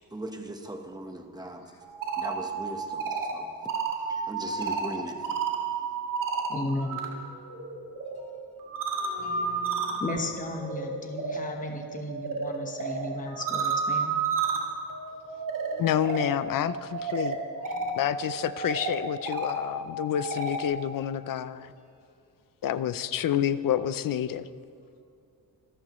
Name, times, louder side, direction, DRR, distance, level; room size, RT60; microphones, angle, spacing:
voice 1, 0.1-1.7 2.2-3.5 4.1-5.3, right 1 dB, 10° right, 4 dB, 1.1 m, -39 dB
sound 1, 1.8-7.1 7.4-20.7, right 4 dB, 60° right, 2.1 m, -32 dB
voice 2, 4.1-4.6 5.7-5.8 6.6-7.2 8.1-8.4 8.9-10.5 12.9-13.0 14.0-16.0 17.6-18.2, left 1 dB, 90° left, -2 dB, 3.1 m, -49 dB
voice 3, 6.5-7.0 10.0-14.1, left 2 dB, 20° left, 2 dB, 1.1 m, -34 dB
voice 4, 15.8-17.4 18.0-21.7 22.6-24.5, left 10 dB, 60° left, 14 dB, 0.6 m, -28 dB
26.0 x 13.5 x 3.1 m, 2.5 s
wide cardioid pair, 160°, 37 cm